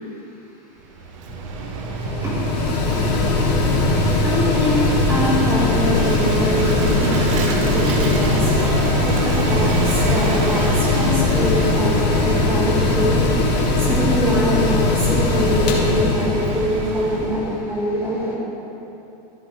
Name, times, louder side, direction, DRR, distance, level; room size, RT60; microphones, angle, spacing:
Vehicle / Engine, 0.8-17.5, right 5 dB, 50° right, 0.8 m, -28 dB
Mechanical fan, 1.3-17.6, left 3 dB, 75° left, 1.9 m, -20 dB
voice 1, 4.2-7.4 7.7-8.4 9.0-10.7 10.9-13.3 13.9-18.3, equal, 10° right, -6 dB, 2.1 m, -23 dB
14.5 x 7.9 x 3.5 m, 2.8 s
supercardioid pair, 165°, 21 cm